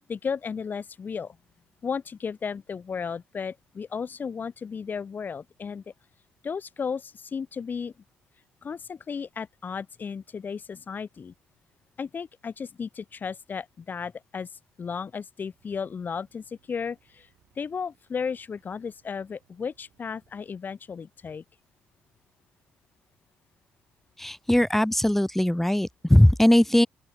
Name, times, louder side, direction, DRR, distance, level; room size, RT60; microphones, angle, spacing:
voice 1, 0.1-1.4 1.8-5.8 6.4-7.9 8.6-11.3 12.0-14.5 14.8-17.3 17.6-21.4, left 6 dB, 40° left, 0.9 m, -34 dB
sound 1, 15.5-20.6, right 13 dB, 65° right, 6.5 m, -68 dB
voice 2, 24.2-26.9, left 1 dB, 5° left, 0.4 m, -20 dB
open air
hypercardioid pair, 50°, 5 cm